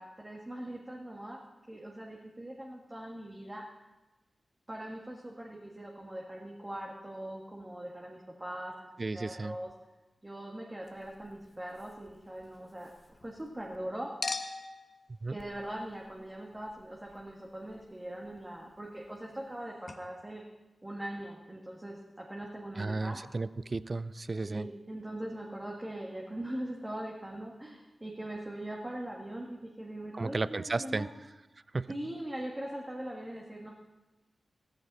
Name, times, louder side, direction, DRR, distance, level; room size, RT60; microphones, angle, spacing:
voice 1, 0.0-1.4 1.7-3.7 4.7-9.7 10.2-14.1 15.3-20.4 20.8-23.2 24.5-31.1 31.9-33.7, right 1 dB, 20° right, -2 dB, 1.8 m, -41 dB
voice 2, 9.0-9.6 15.2-15.4 22.8-24.7 30.1-31.1 31.7-31.9, right 3 dB, 40° right, 16 dB, 0.4 m, -34 dB
Chink clink, 10.8-13.8 14.2-19.6 19.9-20.0, left 3 dB, 45° left, 1.2 m, -45 dB
14.5 x 14.0 x 4.2 m, 1.1 s
cardioid pair, 65°, 0 cm